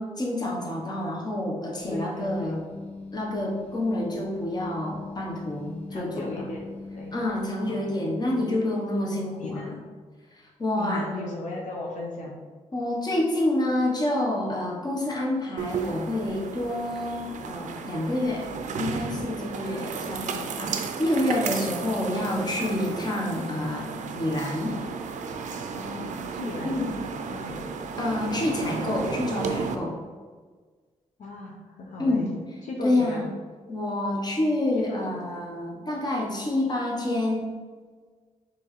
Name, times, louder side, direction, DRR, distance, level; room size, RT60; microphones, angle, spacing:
voice 1, 0.0-2.6 3.1-6.5 7.1-9.8 10.6-11.1 12.7-18.5 18.8-23.9 24.1-24.8 26.6-26.9 28.0-30.0 32.0-32.3 32.8-33.3 33.7-37.5, left 1 dB, 35° left, -2 dB, 1.0 m, -28 dB
sound 1, 1.8-7.3, left 3 dB, 10° left, 0.8 m, -40 dB
voice 2, 1.9-2.6 5.9-6.6 6.9-7.2 7.7-8.0 9.4-9.8 10.7-12.4 19.6-19.9 25.7-26.7 27.3-27.6 31.2-32.3 32.6-33.2 34.9-35.0, left 2 dB, 75° left, -2 dB, 0.7 m, -37 dB
sound 2, 15.6-29.8, right 5 dB, 80° right, 0.4 m, -33 dB
4.4 x 3.0 x 3.1 m, 1.5 s
cardioid pair, 75°, 13 cm